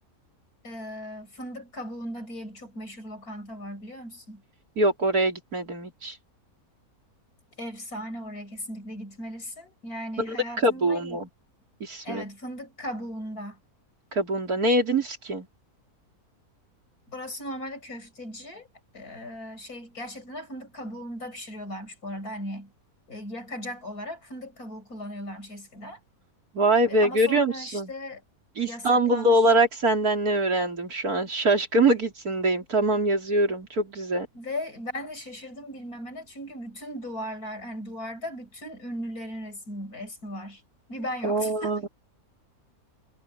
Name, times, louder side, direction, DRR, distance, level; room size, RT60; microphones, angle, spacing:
voice 1, 0.6-4.4 7.5-11.2 12.0-13.6 17.1-18.7 18.9-22.7 23.1-26.0 26.9-28.2 28.6-29.4 34.3-40.6 40.9-41.9, equal, 75° left, 6.8 m, -37 dB
voice 2, 4.8-6.2 10.2-10.4 10.6-11.3 11.8-12.3 14.1-15.5 26.5-27.9 28.6-34.3 41.2-41.9, right 1 dB, 75° right, 4.1 m, -23 dB
omnidirectional pair, 1.6 m